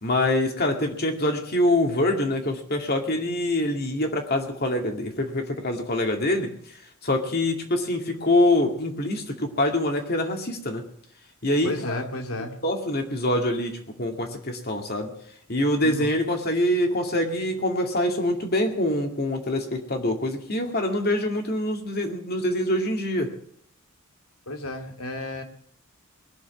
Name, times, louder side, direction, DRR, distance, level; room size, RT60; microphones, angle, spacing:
voice 1, 0.0-6.5 7.0-10.8 11.4-12.0 12.6-15.1 15.5-23.3, left 1 dB, 45° left, 3 dB, 2.2 m, -25 dB
voice 2, 11.6-12.6 15.8-16.1 24.5-25.4, left 1 dB, 80° left, 4 dB, 2.3 m, -32 dB
21.0 x 7.1 x 8.5 m, 0.64 s
head